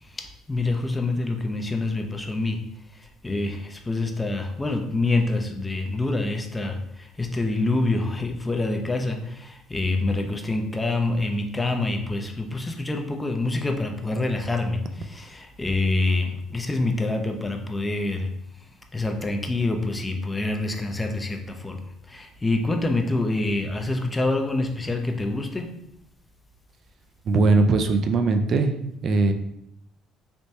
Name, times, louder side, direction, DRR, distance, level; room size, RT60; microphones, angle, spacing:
voice 1, 0.0-25.8, left 2 dB, 20° left, 4 dB, 0.5 m, -26 dB
voice 2, 27.3-28.7 29.0-29.3, right 3 dB, 50° right, 6 dB, 0.4 m, -20 dB
3.4 x 3.0 x 2.7 m, 0.78 s
hypercardioid pair, 60°, 0 cm